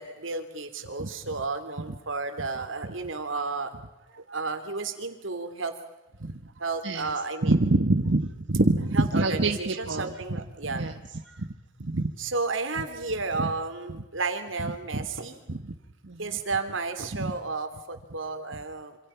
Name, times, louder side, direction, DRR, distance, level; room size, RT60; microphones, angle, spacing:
voice 1, 0.0-3.7 4.3-5.7 6.6-7.5 8.9-10.9 12.2-15.4 16.2-19.0, right 3 dB, 80° right, 8 dB, 3.1 m, -32 dB
voice 2, 6.8-7.1 7.4-10.9 11.3-11.5 11.8-12.1 14.6-15.1 15.5-15.8 16.0-16.4 17.2-17.3, right 2 dB, 65° right, 6 dB, 1.3 m, -26 dB
27.0 x 26.5 x 5.8 m, 1.0 s
head